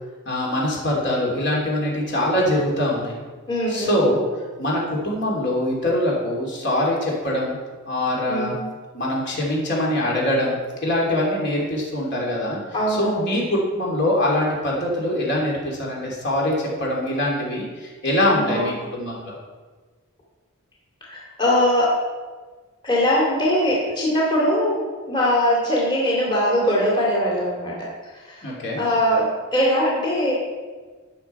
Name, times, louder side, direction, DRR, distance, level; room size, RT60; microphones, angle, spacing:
voice 1, 0.3-3.2 3.7-4.2 4.6-7.5 7.9-8.5 8.9-10.6 10.8-12.6 13.0-19.3 28.4-28.8, left 1 dB, 55° left, -3 dB, 3.1 m, -23 dB
voice 2, 3.5-4.1 8.3-8.7 12.7-13.3 18.3-18.7 21.1-22.0 22.8-30.3, equal, 20° left, -5 dB, 2.3 m, -22 dB
16.0 x 6.3 x 4.6 m, 1.4 s
head